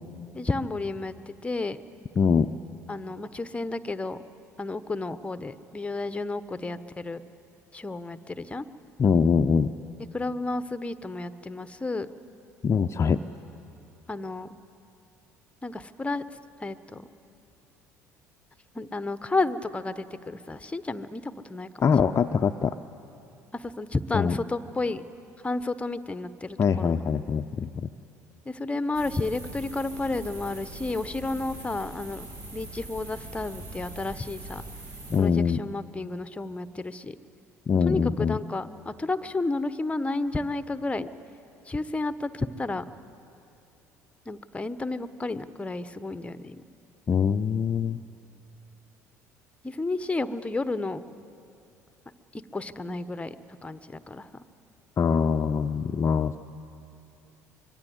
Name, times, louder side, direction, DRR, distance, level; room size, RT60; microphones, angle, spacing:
voice 1, 0.3-1.8 2.9-4.2 4.6-7.2 7.7-8.7 10.1-12.1 14.1-14.5 15.6-16.2 16.6-17.1 18.7-21.8 23.5-25.0 25.4-27.1 28.5-34.6 35.2-37.1 37.8-41.1 41.7-42.8 44.3-46.6 49.6-51.0 52.3-53.3 53.6-54.4, left 2 dB, 15° left, 13 dB, 1.1 m, -31 dB
voice 2, 2.2-2.5 9.0-9.7 12.6-13.2 21.8-22.7 24.1-24.4 26.6-27.9 35.1-35.6 37.7-38.4 47.1-48.0 55.0-56.4, left 6 dB, 35° left, 8 dB, 0.7 m, -23 dB
sound 1, 28.9-35.2, right 2 dB, 60° right, 7.4 m, -42 dB
25.0 x 22.5 x 8.0 m, 2.7 s
figure-of-eight pair, 60°, 8 cm